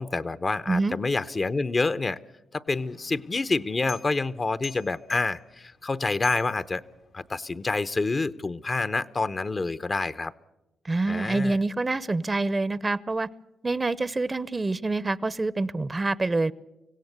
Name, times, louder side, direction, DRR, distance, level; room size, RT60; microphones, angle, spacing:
voice 1, 0.0-2.2 2.5-6.8 7.1-10.3 11.1-11.6, left 3 dB, 40° left, 14 dB, 0.8 m, -28 dB
voice 2, 0.7-1.0 10.8-13.3 13.6-16.5, right 3 dB, 30° right, 20 dB, 0.7 m, -26 dB
sound 1, 2.7-7.4, left 5 dB, 70° left, 1.4 m, -48 dB
25.5 x 16.5 x 8.0 m, 0.96 s
supercardioid pair, 50°, 0 cm